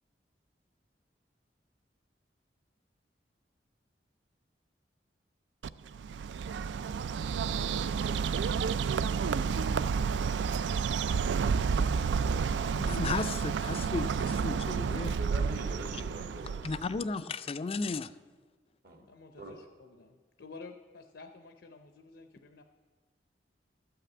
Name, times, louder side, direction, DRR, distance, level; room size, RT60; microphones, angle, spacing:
Bird, 5.6-17.0, right 6 dB, 85° right, 0.3 m, -30 dB
voice 1, 12.7-15.1 15.9-16.0 16.6-18.1, left 4 dB, 35° left, 13 dB, 0.3 m, -34 dB
voice 2, 14.9-16.6 18.8-19.0 19.4-19.5, right 2 dB, 60° right, 3 dB, 1.8 m, -43 dB
voice 3, 19.0-22.6, left 3 dB, 85° left, 6 dB, 0.7 m, -51 dB
12.5 x 5.8 x 8.2 m, 1.5 s
head